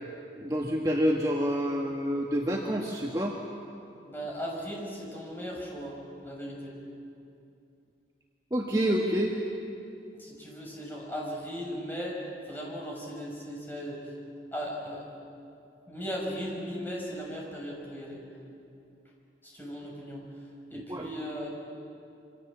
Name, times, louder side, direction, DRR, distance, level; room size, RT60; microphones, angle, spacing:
voice 1, 0.4-3.4 8.5-9.3 20.7-21.1, equal, 20° right, -1 dB, 1.5 m, -28 dB
voice 2, 4.0-6.0 6.2-6.8 10.2-12.2 12.5-14.0 14.5-15.0 15.9-18.2 19.4-20.2 20.7-21.5, equal, 10° left, -3 dB, 5.9 m, -37 dB
27.0 x 25.0 x 7.5 m, 2.6 s
head